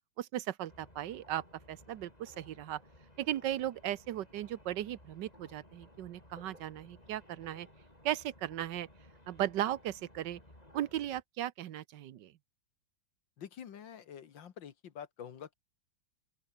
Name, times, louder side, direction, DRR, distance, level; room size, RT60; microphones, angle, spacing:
voice 1, 0.2-1.4 1.7-2.8 3.2-7.7 8.0-8.9 9.3-10.4 10.7-12.3, right 12 dB, 70° right, 1.4 m, -36 dB
sound 1, 0.7-11.2, left 1 dB, 20° left, 6.8 m, -58 dB
voice 2, 13.4-15.5, left 8 dB, 75° left, 2.1 m, -47 dB
open air
omnidirectional pair, 2.1 m